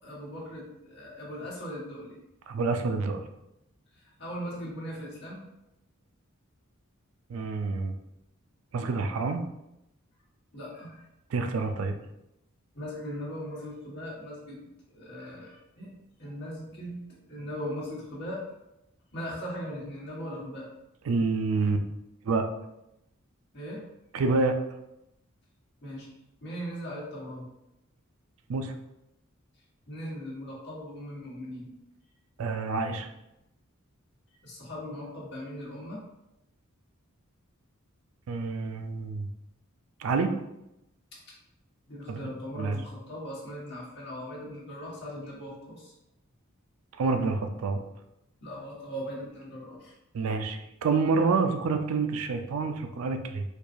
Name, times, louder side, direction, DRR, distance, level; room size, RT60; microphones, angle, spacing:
voice 1, 0.0-2.2 3.9-5.4 10.5-11.0 12.7-14.6 14.9-15.9 16.2-17.0 17.3-18.4 19.1-20.7 23.5-23.8 25.8-26.1 26.4-27.5 29.9-31.7 34.4-36.0 41.1-41.2 41.9-45.9 48.4-49.9, equal, 50° left, -6 dB, 1.4 m, -39 dB
voice 2, 2.5-3.2 7.3-7.9 8.7-9.4 11.3-12.0 21.1-21.8 22.2-22.5 24.1-24.6 28.5-28.7 32.4-33.1 38.3-39.3 40.0-40.3 42.1-42.2 42.5-42.8 47.0-47.8 50.1-53.4, right 4 dB, 65° right, 6 dB, 0.4 m, -27 dB
4.5 x 2.3 x 2.6 m, 0.86 s
head